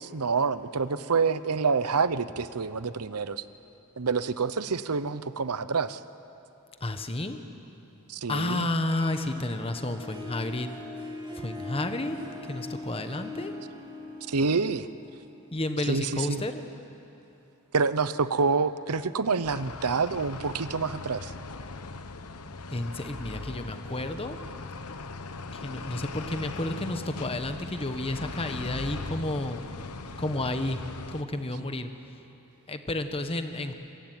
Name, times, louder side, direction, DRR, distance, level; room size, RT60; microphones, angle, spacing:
voice 1, 0.0-3.4 4.0-6.0 8.1-8.7 14.3-14.9 15.9-16.4 17.7-21.3, right 4 dB, 90° right, 14 dB, 0.9 m, -27 dB
voice 2, 6.8-7.4 8.3-10.7 11.3-12.2 12.4-13.5 15.5-16.7 22.7-24.4 25.5-29.7 30.2-30.8 31.1-31.9 32.7-33.7, left 2 dB, 25° left, 8 dB, 1.2 m, -31 dB
Harp, 8.9-15.8, left 2 dB, 20° right, 2.7 m, -41 dB
sound 1, 19.4-31.2, left 3 dB, 85° left, 1.1 m, -39 dB
25.5 x 22.0 x 9.2 m, 2.9 s
head